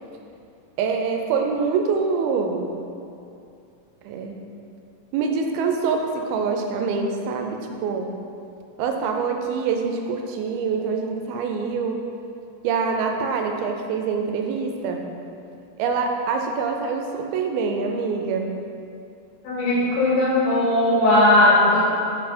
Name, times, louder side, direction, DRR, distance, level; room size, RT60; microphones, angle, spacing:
voice 1, 0.8-2.7 4.1-4.4 5.1-8.1 8.8-12.0 12.6-15.0 15.8-18.5, right 5 dB, 85° right, 3 dB, 2.4 m, -25 dB
voice 2, 19.4-21.8, left 1 dB, 75° left, -7 dB, 3.5 m, -18 dB
6.5 x 4.5 x 4.2 m, 2.6 s
omnidirectional pair, 4.4 m